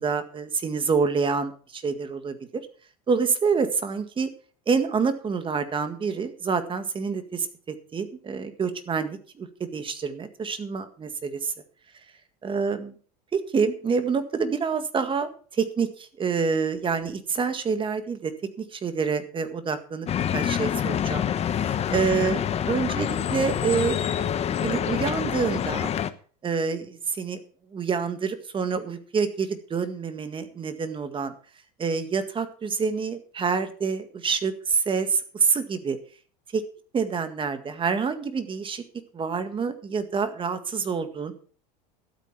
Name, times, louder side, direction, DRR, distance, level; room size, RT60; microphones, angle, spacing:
voice 1, 0.0-2.6 3.1-4.3 4.7-7.5 7.9-9.5 9.7-11.5 12.4-12.9 13.3-18.3 18.6-20.1 20.3-21.3 21.6-24.0 24.6-25.9 26.4-27.4 27.7-31.3 31.8-36.0 36.5-36.6 36.9-38.8 39.1-41.3, right 5 dB, 25° right, 10 dB, 1.8 m, -27 dB
sound 1, 20.1-26.1, left 9 dB, 30° left, 1.0 m, -26 dB
12.5 x 8.7 x 5.9 m, 0.43 s
supercardioid pair, 120°, 21 cm